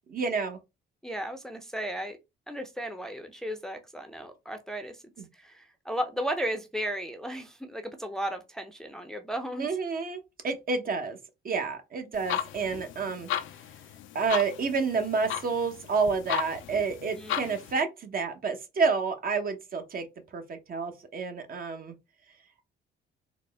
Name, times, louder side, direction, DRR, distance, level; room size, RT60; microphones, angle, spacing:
voice 1, 0.1-0.6 9.6-11.2 11.4-13.3 14.1-20.1 20.3-21.9, right 4 dB, 45° right, 0.9 m, -29 dB
voice 2, 1.0-2.2 2.5-5.0 5.3-9.8 17.1-17.4, equal, 5° left, 0.6 m, -35 dB
sound 1, 12.1-17.7, left 11 dB, 80° left, 0.5 m, -36 dB
4.0 x 2.1 x 3.4 m
cardioid pair, 90°, 20 cm